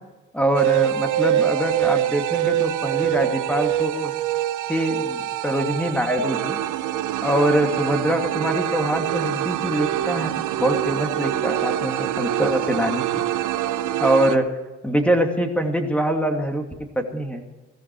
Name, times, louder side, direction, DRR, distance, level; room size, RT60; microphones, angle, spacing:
voice 1, 0.3-4.1 4.7-6.6 7.2-10.3 10.6-13.3 14.0-14.4 14.8-16.7 17.0-17.4, right 1 dB, 5° left, 4 dB, 2.5 m, -23 dB
sound 1, 0.5-14.4, right 13 dB, 80° right, 0.7 m, -24 dB
16.5 x 14.0 x 4.8 m, 1.2 s
cardioid pair, 90°, 30 cm